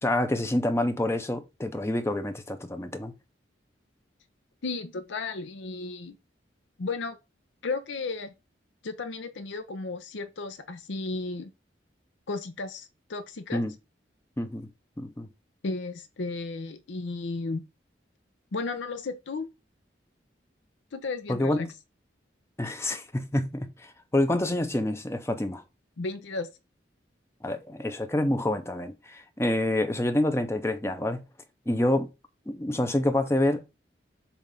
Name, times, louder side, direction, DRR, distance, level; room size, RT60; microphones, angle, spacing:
voice 1, 0.0-3.1 13.5-13.7 14.4-14.7 15.0-15.3 21.3-21.7 22.6-25.6 27.4-31.2 31.7-32.1 32.5-33.8, left 1 dB, 15° left, 0.5 m, -27 dB
voice 2, 4.6-6.2 6.8-7.2 7.6-8.3 8.8-11.5 12.3-13.6 15.6-17.6 18.5-19.5 20.9-21.7 26.0-26.5, left 3 dB, 80° left, 0.6 m, -34 dB
7.1 x 2.5 x 5.2 m
head